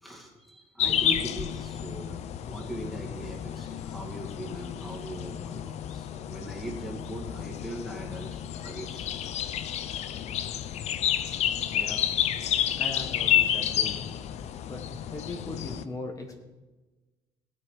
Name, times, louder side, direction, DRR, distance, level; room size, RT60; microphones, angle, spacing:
voice 1, 0.0-9.1 10.4-10.5 10.9-11.0 11.5-11.7, right 1 dB, ahead, -2 dB, 2.3 m, -40 dB
sound 1, 0.8-15.8, left 10 dB, 55° left, 0.6 m, -30 dB
voice 2, 11.4-12.1 12.8-14.1 14.7-14.8 15.1-16.4, left 2 dB, 25° left, 3 dB, 1.5 m, -39 dB
18.0 x 8.3 x 5.0 m, 1.2 s
cardioid pair, 160°, 14 cm